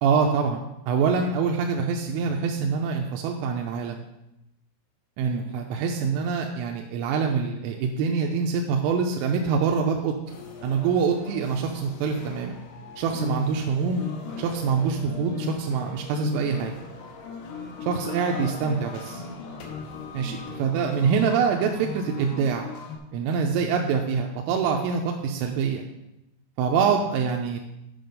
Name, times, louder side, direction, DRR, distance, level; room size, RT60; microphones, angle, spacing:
voice 1, 0.0-4.0 5.2-10.4 10.6-12.5 13.0-14.0 14.4-16.7 17.9-19.2 20.1-22.7 23.1-25.9 26.6-27.6, right 5 dB, 85° right, 2 dB, 3.3 m, -25 dB
sound 1, 10.3-23.0, left 5 dB, 70° left, 2.9 m, -38 dB
9.4 x 6.3 x 5.2 m, 0.90 s
omnidirectional pair, 5.8 m